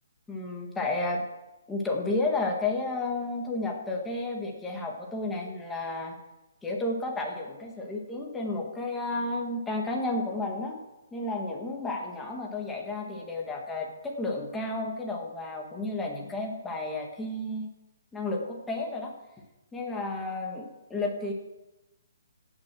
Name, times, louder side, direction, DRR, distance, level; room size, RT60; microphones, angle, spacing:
voice 1, 0.3-1.2 1.7-6.1 6.6-10.8 11.1-17.7 18.1-19.1 19.7-21.3, left 2 dB, 5° left, 0 dB, 1.6 m, -32 dB
16.5 x 6.2 x 6.1 m, 1.0 s
hypercardioid pair, 170°, 0 cm